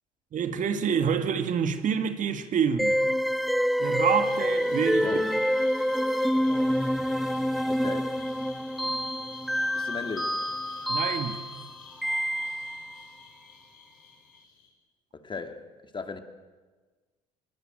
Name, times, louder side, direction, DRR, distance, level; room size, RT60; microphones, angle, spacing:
voice 1, 0.3-3.0 3.8-5.1 10.9-11.4, right 7 dB, 45° right, 2.0 m, -27 dB
sound 1, 2.8-12.9, equal, ahead, 1.1 m, -27 dB
sound 2, 4.2-14.7, left 6 dB, 75° left, 5.6 m, -50 dB
voice 2, 5.0-5.3 7.6-8.2 9.7-10.5 15.1-16.2, left 4 dB, 25° left, 2.4 m, -37 dB
25.0 x 22.5 x 7.8 m
hypercardioid pair, 60°, 19 cm